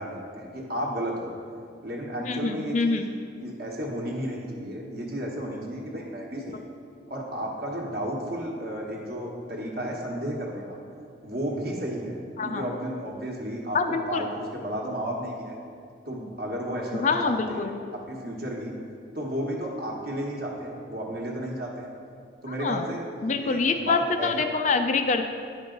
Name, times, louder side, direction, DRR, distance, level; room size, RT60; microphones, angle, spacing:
voice 1, 0.0-1.3 1.8-3.0 3.4-6.6 7.1-10.8 11.2-12.2 12.4-13.8 14.1-15.6 16.0-18.7 19.1-21.9 22.4-24.4, right 1 dB, 50° right, -1 dB, 1.2 m, -33 dB
voice 2, 2.2-3.1 12.4-12.6 13.7-14.2 16.9-17.8 22.6-22.9 23.2-25.3, left 4 dB, 35° left, 6 dB, 0.3 m, -25 dB
10.0 x 5.4 x 3.9 m, 2.3 s
head